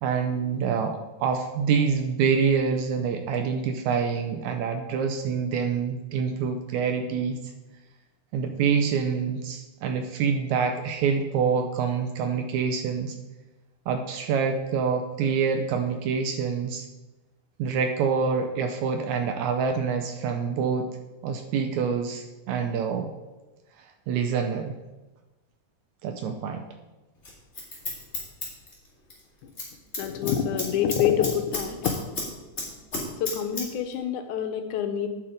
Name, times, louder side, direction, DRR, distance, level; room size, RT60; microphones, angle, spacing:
voice 1, 0.0-7.4 8.3-13.2 13.9-16.9 17.6-20.9 21.2-23.1 23.8-24.7 26.0-26.7, right 6 dB, 80° right, 5 dB, 1.8 m, -26 dB
Scissors, 27.2-29.2 29.5-29.7 29.9-32.3 32.6-33.6 33.9-34.0, left 2 dB, 20° left, 2.4 m, -32 dB
voice 2, 30.0-31.9 33.2-35.1, left 9 dB, 80° left, 6 dB, 2.0 m, -26 dB
8.7 x 5.8 x 5.0 m, 1.1 s
omnidirectional pair, 3.7 m